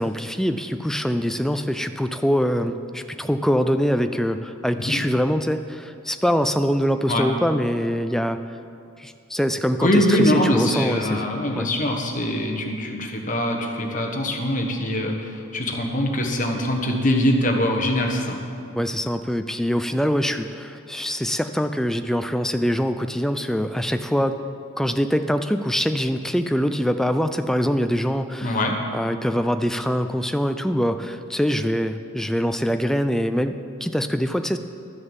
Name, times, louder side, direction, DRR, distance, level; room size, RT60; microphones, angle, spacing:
voice 1, 0.0-8.4 9.0-11.3 11.6-11.7 18.8-24.4 24.8-28.6 28.9-34.6, equal, ahead, 9 dB, 0.3 m, -23 dB
voice 2, 9.8-18.4 28.4-28.8, left 1 dB, 40° left, 1 dB, 1.2 m, -23 dB
12.5 x 6.6 x 7.3 m, 2.6 s
head